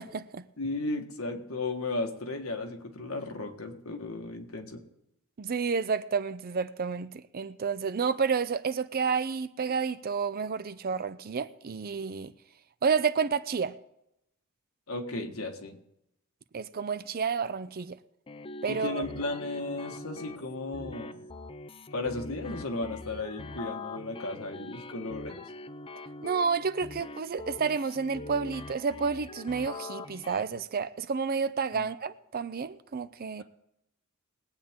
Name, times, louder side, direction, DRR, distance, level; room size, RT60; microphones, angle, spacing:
voice 1, 0.0-0.5 5.4-12.3 12.8-13.7 16.5-18.0 18.6-19.1 26.2-33.4, right 5 dB, 45° right, 0.5 m, -30 dB
voice 2, 0.6-4.8 14.9-15.8 18.7-21.3 21.9-25.5 31.7-31.8, left 2 dB, 75° left, 1.6 m, -35 dB
sound 1, 18.3-30.4, left 2 dB, 25° left, 0.4 m, -43 dB
21.0 x 8.6 x 3.7 m
head